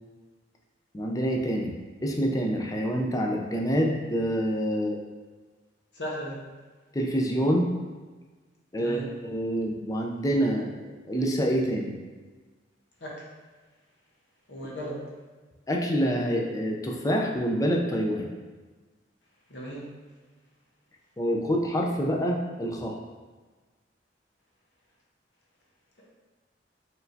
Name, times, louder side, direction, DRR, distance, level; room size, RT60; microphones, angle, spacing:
voice 1, 0.9-1.7 2.0-5.0 6.9-7.7 8.7-11.9 15.7-18.3 21.2-23.0, equal, 20° left, 0 dB, 0.5 m, -26 dB
voice 2, 5.9-6.4 8.8-9.1 13.0-13.3 14.5-15.1 19.5-19.9, equal, 75° left, -3 dB, 1.0 m, -36 dB
4.6 x 3.3 x 2.7 m, 1.3 s
head